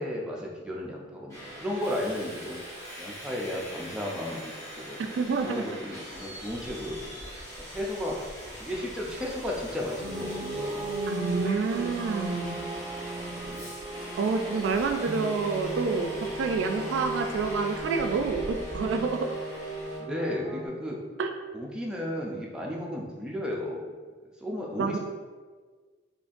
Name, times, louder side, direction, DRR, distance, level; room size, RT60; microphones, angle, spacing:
voice 1, 0.0-2.6 3.0-5.1 5.4-7.3 7.6-8.2 8.6-10.9 13.3-13.7 20.0-21.0 21.5-23.8 24.4-25.0, left 1 dB, 5° right, -3 dB, 0.4 m, -34 dB
Subway metro underground, 1.3-20.0, equal, 20° left, 1.0 m, -42 dB
voice 2, 5.1-5.6 11.1-12.6 14.2-16.1 16.4-19.3 21.2-21.3 24.8-25.0, right 4 dB, 80° right, 5 dB, 0.3 m, -28 dB
sound 1, 10.0-20.7, right 2 dB, 35° right, 1.2 m, -36 dB
3.7 x 2.5 x 2.5 m, 1.4 s
head